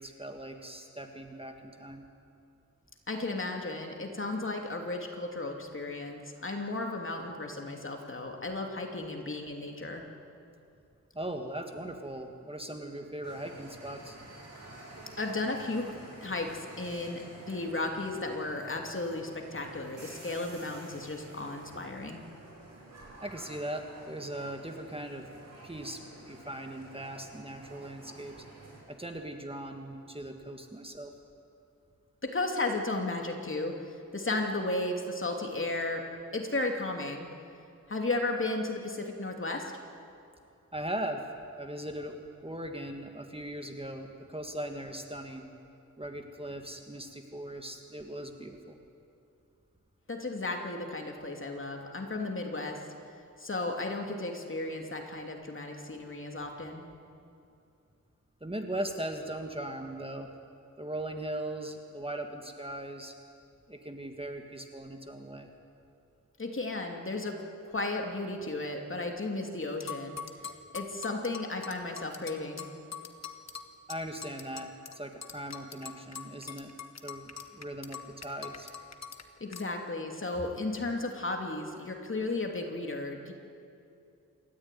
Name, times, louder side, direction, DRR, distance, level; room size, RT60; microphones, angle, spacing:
voice 1, 0.0-2.1 11.1-14.2 23.2-25.3 25.6-28.3 28.9-31.1 40.7-41.2 41.6-45.5 46.0-48.8 58.4-60.3 60.8-63.1 63.7-65.5 73.9-76.7 77.0-78.7, right 1 dB, 15° right, 4 dB, 1.8 m, -39 dB
voice 2, 3.1-10.0 15.2-15.9 16.2-22.2 32.2-36.0 36.3-37.3 37.9-39.7 50.1-52.8 53.4-56.8 66.4-67.4 67.6-70.2 70.7-72.7 79.4-83.3, left 2 dB, 40° left, 2 dB, 2.9 m, -34 dB
sound 1, 13.2-28.8, right 2 dB, 55° right, 6.7 m, -50 dB
sound 2, 69.8-75.0 75.2-79.2 79.5-79.7, left 7 dB, 55° left, 1.5 m, -42 dB
28.0 x 13.5 x 9.3 m, 2.6 s
wide cardioid pair, 85°, 32 cm